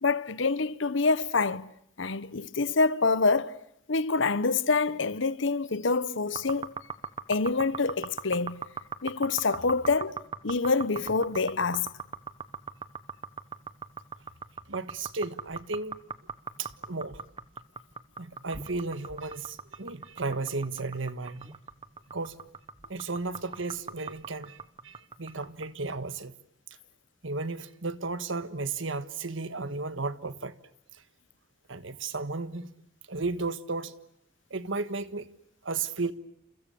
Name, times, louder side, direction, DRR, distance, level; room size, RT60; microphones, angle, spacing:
voice 1, 0.0-1.7 2.0-3.6 3.9-6.7 7.3-8.6 9.0-11.9, left 4 dB, 75° left, 1.0 m, -26 dB
sound 1, 6.3-25.7, right 5 dB, 25° right, 1.1 m, -39 dB
voice 2, 14.7-16.0 16.6-17.2 18.2-21.6 22.1-22.4 22.9-24.6 24.8-26.3 27.2-30.5 31.7-32.7 33.1-33.9 34.5-35.3 35.6-36.1, right 3 dB, 80° right, 1.5 m, -34 dB
30.0 x 28.5 x 7.0 m
head